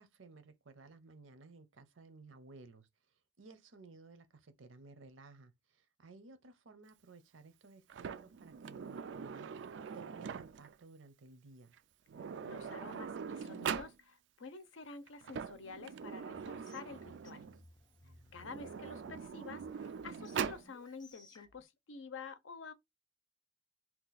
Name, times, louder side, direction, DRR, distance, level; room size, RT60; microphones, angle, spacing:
voice 1, 0.0-2.9 3.4-9.5 9.9-11.7 18.0-18.4, right 3 dB, 90° right, 0.7 m, -57 dB
Sliding door, 7.9-10.8 11.7-11.8 12.1-14.0 15.1-17.6 18.4-20.7, right 7 dB, 65° right, 0.3 m, -42 dB
voice 2, 12.2-17.4 18.3-22.7, left 4 dB, 90° left, 0.6 m, -49 dB
sound 1, 16.3-21.6, left 2 dB, 20° left, 0.4 m, -61 dB
2.9 x 2.3 x 3.9 m
head